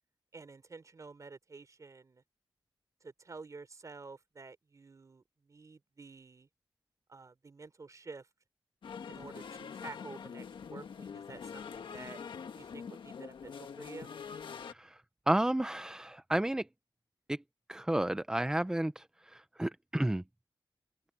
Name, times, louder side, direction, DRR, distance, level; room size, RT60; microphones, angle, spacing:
voice 1, 0.3-2.2 3.0-6.5 7.1-8.3 9.1-12.2 12.5-14.1, right 4 dB, 40° right, 3.7 m, -50 dB
sound 1, 8.8-14.7, left 6 dB, 80° left, 1.6 m, -44 dB
voice 2, 14.6-15.0 15.3-16.7 17.3-17.4 17.7-20.2, right 1 dB, 10° right, 0.4 m, -32 dB
open air
wide cardioid pair, 115°, 8 cm